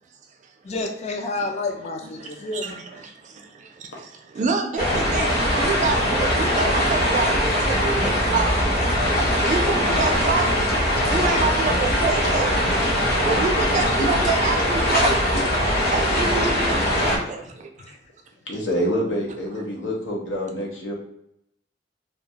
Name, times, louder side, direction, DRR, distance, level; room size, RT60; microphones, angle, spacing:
voice 1, 0.6-2.8 9.1-9.2 11.0-11.4 16.4-16.5 17.8-18.0, left 3 dB, 35° left, 4 dB, 0.4 m, -30 dB
voice 2, 2.2-8.6 9.4-10.6 11.1-12.8 13.2-15.2 15.9-17.7, right 4 dB, 40° right, 3 dB, 0.4 m, -27 dB
sound 1, 4.8-17.2, equal, 55° left, 0.8 m, -21 dB
voice 3, 18.5-20.9, equal, 90° left, -1 dB, 0.7 m, -26 dB
2.3 x 2.1 x 2.8 m, 0.77 s
head